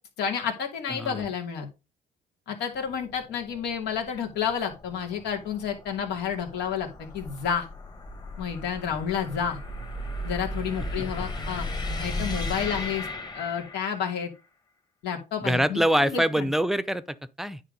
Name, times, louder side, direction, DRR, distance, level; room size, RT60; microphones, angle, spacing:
voice 1, 0.2-1.7 2.5-7.7 8.4-9.6 10.2-11.7 12.0-13.1 13.3-14.3 15.0-16.5, left 7 dB, 80° left, 2.6 m, -30 dB
voice 2, 0.9-1.2 11.0-11.1 15.4-17.6, equal, ahead, 0.6 m, -25 dB
sound 1, 2.8-14.2, left 1 dB, 25° left, 1.6 m, -36 dB
9.9 x 3.7 x 5.2 m
cardioid pair, 110°, 17 cm